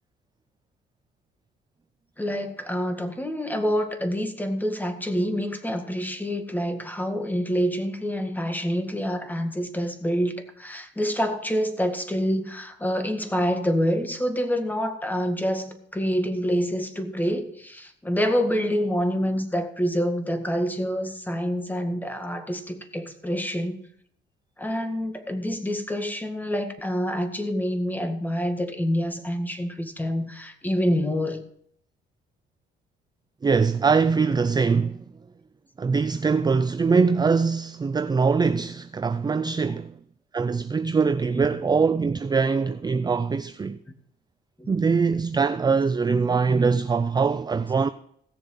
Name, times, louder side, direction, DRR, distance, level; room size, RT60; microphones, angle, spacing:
voice 1, 2.2-23.8 24.6-31.4 41.2-41.5 44.6-44.9, equal, 10° left, 1.8 m, -27 dB
voice 2, 33.4-35.0 35.8-40.0 40.3-43.8 44.7-47.9, right 5 dB, 20° right, 0.4 m, -22 dB
16.5 x 7.1 x 5.6 m
cardioid pair, 90°, 20 cm